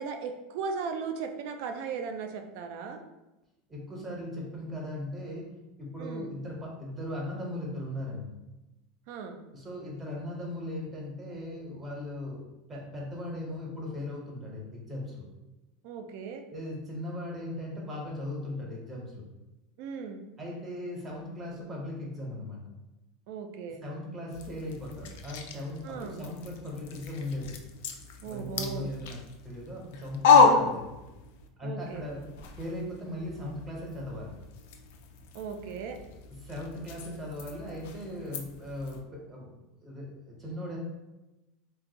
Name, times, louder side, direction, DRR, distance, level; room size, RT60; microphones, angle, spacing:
voice 1, 0.0-3.0 6.0-6.3 9.1-9.4 15.8-16.4 19.8-20.2 23.3-23.8 25.8-26.2 28.2-28.9 30.4-30.7 31.6-32.1 35.3-36.0, right 5 dB, 60° right, 6 dB, 0.4 m, -37 dB
voice 2, 3.7-5.5 5.8-8.3 9.5-12.4 12.7-15.2 16.5-19.2 20.4-22.6 23.8-27.5 28.2-30.9 31.6-34.3 36.3-39.5 39.8-40.8, left 1 dB, 20° right, -2 dB, 0.8 m, -38 dB
sound 1, 24.3-31.5 31.8-39.0, left 5 dB, 75° left, 0.4 m, -30 dB
2.5 x 2.3 x 3.9 m, 1.0 s
supercardioid pair, 155°, 0 cm